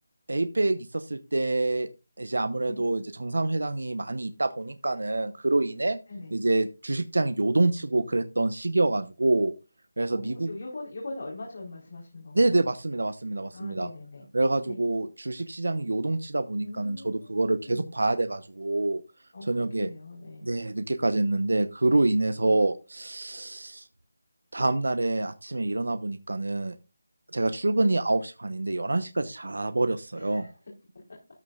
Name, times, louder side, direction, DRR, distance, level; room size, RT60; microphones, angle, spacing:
voice 1, 0.3-1.9 2.2-6.0 6.3-9.5 10.0-10.5 12.3-13.9 14.3-19.0 19.5-19.9 20.4-23.9 24.5-26.8 27.3-30.5, right 2 dB, 90° right, 11 dB, 1.0 m, -26 dB
voice 2, 10.1-12.5 13.5-14.3 14.6-14.8 16.6-17.9 19.3-20.5 22.4-22.5 27.7-27.8 30.1-30.5, left 2 dB, 65° left, -2 dB, 4.3 m, -41 dB
14.0 x 9.7 x 2.5 m, 0.31 s
figure-of-eight pair, 170°, 0 cm